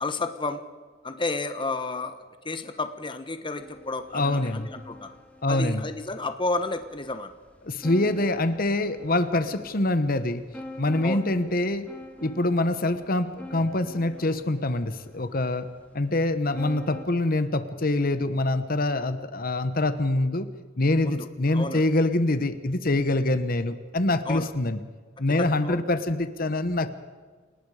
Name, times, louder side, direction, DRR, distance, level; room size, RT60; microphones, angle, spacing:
voice 1, 0.0-0.6 1.0-2.2 2.4-5.1 5.5-7.3 11.0-11.2 21.0-21.3 21.5-21.8 24.3-24.5 25.4-25.8, left 3 dB, 25° left, 9 dB, 1.1 m, -31 dB
sound 1, 3.6-17.0, left 1 dB, 10° left, 2.9 m, -46 dB
voice 2, 4.1-4.7 5.4-5.8 7.6-10.4 10.8-11.9 12.2-15.7 15.9-20.5 20.8-24.8 25.2-26.9, left 2 dB, 50° left, 11 dB, 1.2 m, -25 dB
29.0 x 19.0 x 5.0 m, 1.5 s
head